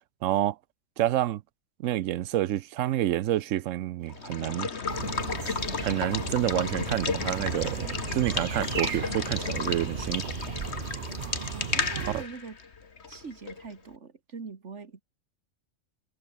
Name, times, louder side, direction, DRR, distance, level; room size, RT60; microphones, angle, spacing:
voice 1, 0.2-0.6 1.0-1.4 1.8-4.7 5.8-10.3 12.0-12.2, right 13 dB, 85° right, 1.0 m, -28 dB
Water / Water tap faucet / Liquid, 4.1-13.7, left 5 dB, 60° left, 2.0 m, -33 dB
sound 1, 4.9-12.2, right 7 dB, 45° right, 1.0 m, -36 dB
voice 2, 11.5-12.6 13.1-15.0, right 5 dB, 65° right, 2.3 m, -42 dB
omnidirectional pair, 1.3 m